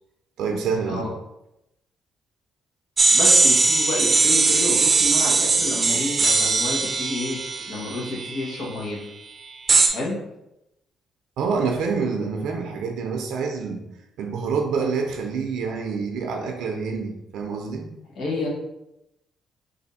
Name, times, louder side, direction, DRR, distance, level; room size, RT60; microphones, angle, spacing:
voice 1, 0.4-1.0 11.4-13.8 14.2-17.9, right 5 dB, 80° right, 3 dB, 0.5 m, -27 dB
sound 1, 3.0-8.7 9.7-9.9, right 3 dB, 35° right, 0.5 m, -20 dB
voice 2, 3.1-9.0 9.9-10.2 18.1-18.5, left 2 dB, 65° left, -3 dB, 1.2 m, -29 dB
3.4 x 2.6 x 4.1 m, 0.87 s
cardioid pair, 90°, 0 cm